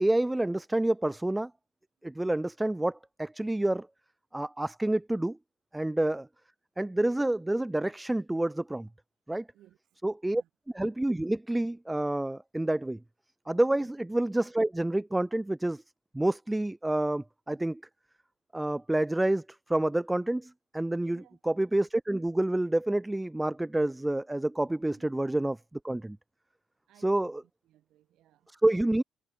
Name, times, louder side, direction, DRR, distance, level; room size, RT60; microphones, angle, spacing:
voice 1, 0.0-1.5 2.0-3.9 4.3-5.4 5.7-6.2 6.8-8.9 9.3-9.4 10.0-10.4 10.8-13.0 13.5-15.8 16.1-17.8 18.5-19.4 19.7-21.2 21.5-25.6 25.8-26.2 27.0-27.3 28.6-29.0, right 1 dB, 10° right, 0.4 m, -28 dB
voice 2, 9.5-10.5 13.7-13.9 21.1-21.4 25.0-25.1 26.9-28.5, right 13 dB, 90° right, 4.8 m, -62 dB
cardioid pair, 105°, 0 cm